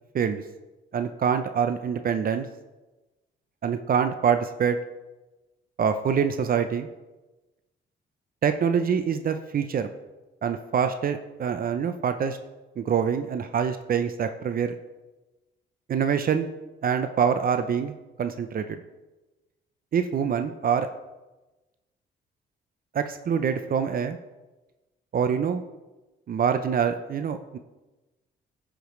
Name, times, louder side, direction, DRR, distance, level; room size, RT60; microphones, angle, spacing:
voice 1, 0.9-2.5 3.6-4.8 5.8-6.9 8.4-9.9 10.4-12.4 12.8-14.7 15.9-16.5 16.8-18.8 19.9-20.9 22.9-24.2 25.1-25.6 26.3-27.6, right 7 dB, 45° right, 9 dB, 0.6 m, -25 dB
15.0 x 5.1 x 3.1 m, 1.1 s
cardioid pair, 90°, 20 cm